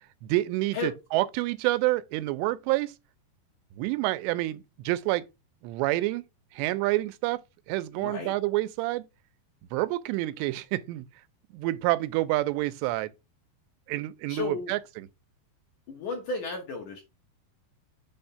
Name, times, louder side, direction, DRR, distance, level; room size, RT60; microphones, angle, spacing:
voice 1, 0.2-2.9 3.8-5.2 5.6-6.2 6.5-7.4 7.7-9.1 9.7-11.1 11.5-13.1 13.9-15.1, right 18 dB, 90° right, 2.7 m, -28 dB
voice 2, 8.0-8.3 14.3-14.7 15.9-17.0, left 4 dB, 65° left, 2.1 m, -33 dB
7.0 x 2.6 x 5.5 m
omnidirectional pair, 4.9 m